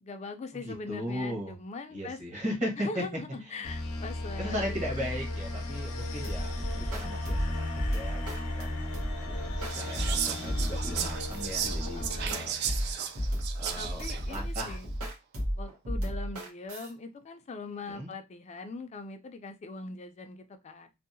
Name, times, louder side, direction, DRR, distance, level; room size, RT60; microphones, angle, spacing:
voice 1, 0.0-2.2 2.8-4.8 6.0-6.5 11.8-12.6 13.8-14.9 15.6-20.9, left 3 dB, 30° left, 7 dB, 0.3 m, -42 dB
voice 2, 0.6-1.5 1.9-3.0 3.4-3.6 4.4-8.8 9.1-13.2 13.5-14.0 14.3-14.8 17.9-18.1, equal, 35° right, -1 dB, 1.0 m, -37 dB
sound 1, 3.6-13.1, left 2 dB, 90° left, 0.6 m, -36 dB
sound 2, 6.2-16.9, equal, 85° right, 0.9 m, -34 dB
Whispering, 9.6-14.8, right 8 dB, 50° right, 0.3 m, -35 dB
2.7 x 2.1 x 2.6 m, 0.25 s
head